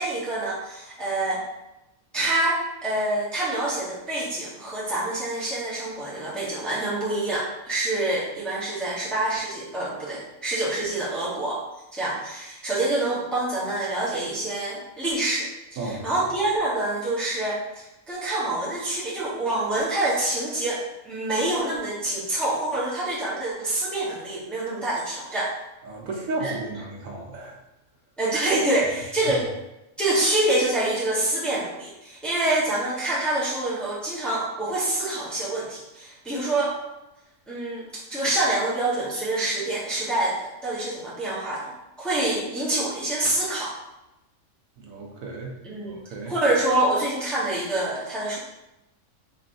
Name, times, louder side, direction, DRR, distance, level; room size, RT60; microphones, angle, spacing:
voice 1, 0.0-1.4 2.1-11.6 11.9-15.5 15.8-25.5 26.4-26.5 28.2-29.5 30.0-36.7 37.5-40.4 40.6-41.7 42.0-43.7 45.6-46.0 46.3-48.4, right 2 dB, ahead, -8 dB, 0.9 m, -26 dB
voice 2, 15.8-16.1 25.8-27.6 29.3-29.4 44.8-45.5 45.8-46.3, right 2 dB, 75° right, 0 dB, 1.1 m, -33 dB
4.4 x 3.0 x 2.6 m, 0.94 s
omnidirectional pair, 1.5 m